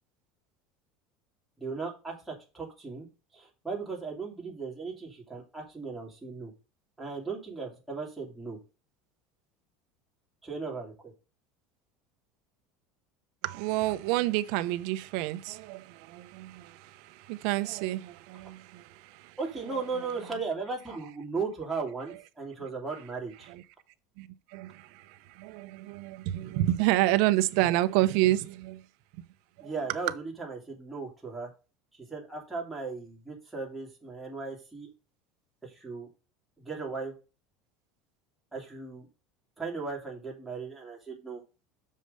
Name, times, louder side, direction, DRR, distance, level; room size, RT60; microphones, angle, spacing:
voice 1, 1.6-3.1 3.3-6.5 7.0-8.6 10.4-11.1 19.4-23.5 29.6-31.5 31.9-34.9 35.6-36.1 36.6-37.1 38.5-39.1 39.6-41.4, right 4 dB, 5° right, 2.6 m, -37 dB
voice 2, 13.4-19.4 23.5-23.6 24.2-28.8 29.6-29.7, right 16 dB, 60° right, 0.7 m, -29 dB
6.4 x 5.1 x 5.3 m
cardioid pair, 170°, 0 cm